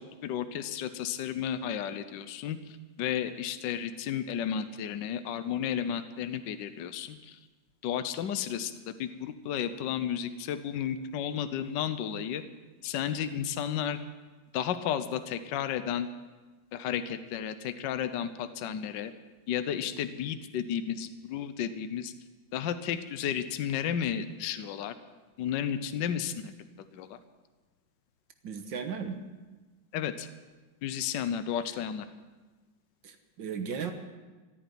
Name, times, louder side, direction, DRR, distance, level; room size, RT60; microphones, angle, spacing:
voice 1, 0.2-2.6 3.0-7.4 7.8-12.4 12.8-14.0 14.5-16.1 16.7-19.1 19.5-22.1 22.5-24.9 25.4-26.5 26.9-27.2 29.9-30.3 30.8-32.0, left 9 dB, 70° left, 10 dB, 1.4 m, -33 dB
voice 2, 28.4-29.2 33.0-33.9, right 6 dB, 70° right, 6 dB, 1.9 m, -35 dB
14.5 x 9.5 x 9.2 m, 1.3 s
omnidirectional pair, 2.1 m